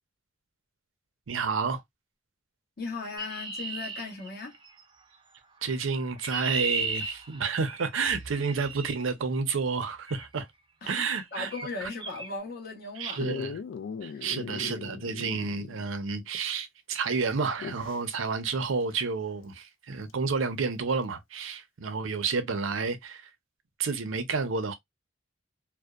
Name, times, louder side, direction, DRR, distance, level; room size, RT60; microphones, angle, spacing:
voice 1, 1.3-1.8 5.6-10.5 10.9-11.5 11.8-11.9 13.0-13.6 14.0-23.3 23.8-24.7, right 4 dB, 80° right, 0.5 m, -30 dB
voice 2, 2.8-4.6 10.8-13.3 14.1-14.3, left 3 dB, 50° left, 1.0 m, -38 dB
Chirp tweet, 3.2-4.8 5.8-9.0 10.1-10.3 10.9-11.2 11.5-11.7 12.0-12.3, right 4 dB, 25° right, 0.4 m, -35 dB
Dog, 13.2-15.9 16.2-16.3 17.4-18.0 20.1-20.2, left 6 dB, 70° left, 0.3 m, -38 dB
2.7 x 2.0 x 2.3 m
head